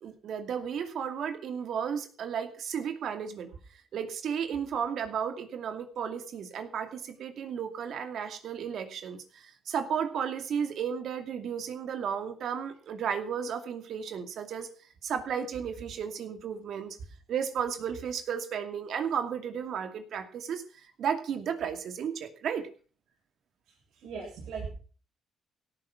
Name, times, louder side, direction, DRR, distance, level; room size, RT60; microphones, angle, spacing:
voice 1, 0.0-3.5 3.9-14.7 15.0-17.0 17.3-20.6 21.0-22.7, right 7 dB, 70° right, 8 dB, 2.4 m, -33 dB
voice 2, 23.7-24.7, right 5 dB, 85° right, -4 dB, 7.3 m, -40 dB
17.5 x 9.7 x 6.0 m, 0.41 s
cardioid pair, 90°, 0 cm